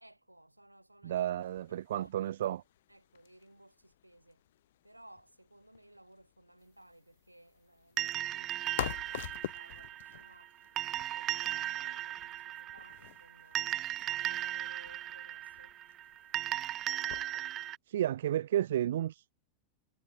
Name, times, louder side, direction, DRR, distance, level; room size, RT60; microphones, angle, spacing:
voice 1, 0.0-1.3 1.9-2.3 2.9-4.4 4.8-10.6 10.8-13.7 14.0-15.8, right 1 dB, 85° right, 5.5 m, -59 dB
voice 2, 1.0-2.6 17.9-19.3, right 12 dB, 60° right, 1.2 m, -32 dB
sound 1, 1.4-17.7, left 13 dB, 55° left, 0.8 m, -48 dB
sound 2, 8.0-17.8, right 13 dB, 30° right, 0.5 m, -37 dB
figure-of-eight pair, 90°, 0 cm